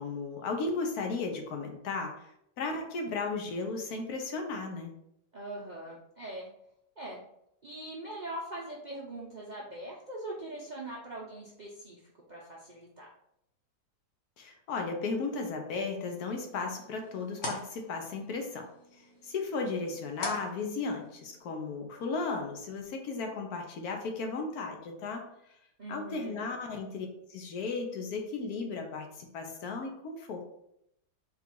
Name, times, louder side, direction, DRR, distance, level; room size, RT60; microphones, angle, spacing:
voice 1, 0.0-2.1 2.6-4.9 14.4-18.7 19.2-25.2 25.9-30.4, left 4 dB, 75° left, 3 dB, 1.2 m, -35 dB
voice 2, 5.3-6.5 7.0-7.2 7.6-12.0 12.3-13.1 25.8-26.5, right 1 dB, 65° right, -4 dB, 0.4 m, -42 dB
sound 1, 16.0-21.4, left 2 dB, 50° left, 1.2 m, -44 dB
3.7 x 2.4 x 4.4 m, 0.77 s
omnidirectional pair, 1.7 m